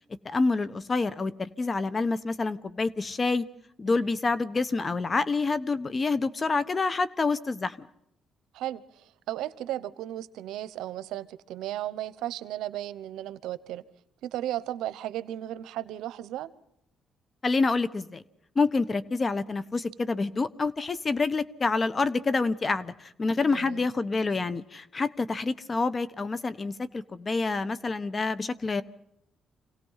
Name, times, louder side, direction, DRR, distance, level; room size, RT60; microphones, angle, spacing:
voice 1, 0.2-3.5 3.8-7.7 17.4-18.2 18.5-28.8, left 3 dB, 35° left, 16 dB, 1.1 m, -27 dB
voice 2, 8.5-13.8 14.2-16.5 23.5-23.9, right 13 dB, 90° right, 15 dB, 0.9 m, -35 dB
26.5 x 17.5 x 5.7 m, 0.78 s
cardioid pair, 90°, 0 cm